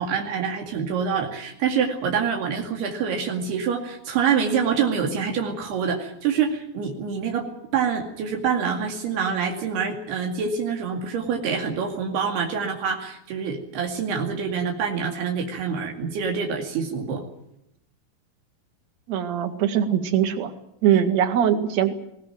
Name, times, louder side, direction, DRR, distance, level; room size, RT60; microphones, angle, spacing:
voice 1, 0.0-17.2, right 6 dB, 85° right, 2 dB, 4.4 m, -26 dB
voice 2, 19.1-20.5 20.8-21.9, right 9 dB, 50° right, 8 dB, 2.8 m, -21 dB
21.0 x 19.5 x 9.2 m, 0.82 s
omnidirectional pair, 4.5 m